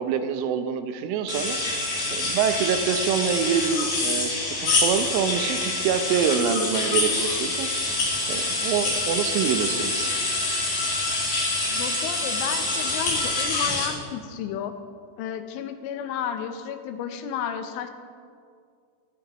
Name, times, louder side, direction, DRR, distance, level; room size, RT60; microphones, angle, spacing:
voice 1, 0.0-1.7 2.1-7.7 8.3-10.1, right 7 dB, 80° right, 8 dB, 3.2 m, -26 dB
sound 1, 1.3-13.9, left 2 dB, 60° left, 5.3 m, -26 dB
voice 2, 11.7-14.7 15.2-17.9, left 8 dB, 80° left, 8 dB, 3.1 m, -32 dB
21.0 x 13.0 x 3.0 m, 2.2 s
omnidirectional pair, 5.8 m